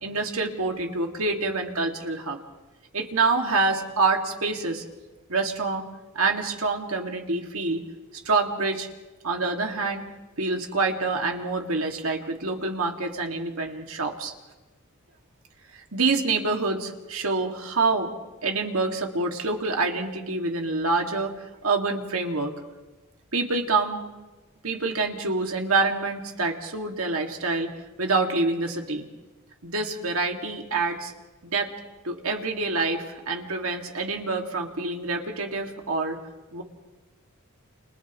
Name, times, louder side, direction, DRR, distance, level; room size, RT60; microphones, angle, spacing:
voice 1, 0.0-2.4 2.9-4.8 5.3-5.8 6.1-7.8 8.3-8.9 9.2-10.0 10.4-14.3 15.9-18.1 18.4-21.3 21.6-22.5 23.3-24.0 24.6-27.7 28.0-29.1 29.6-31.1 31.4-31.7 32.0-36.2 36.5-36.6, right 3 dB, 70° right, 2 dB, 2.3 m, -26 dB
30.0 x 29.5 x 3.2 m, 1.1 s
head